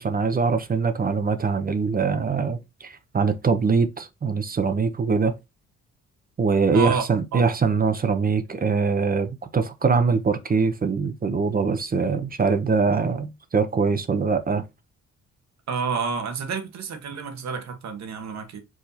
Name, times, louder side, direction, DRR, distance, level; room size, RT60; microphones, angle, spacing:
voice 1, 0.0-5.3 6.4-14.6, right 5 dB, 30° right, 0.7 m, -23 dB
voice 2, 6.7-7.5 15.7-18.6, right 5 dB, 65° right, 1.3 m, -29 dB
4.9 x 2.7 x 4.0 m
cardioid pair, 90°, 30 cm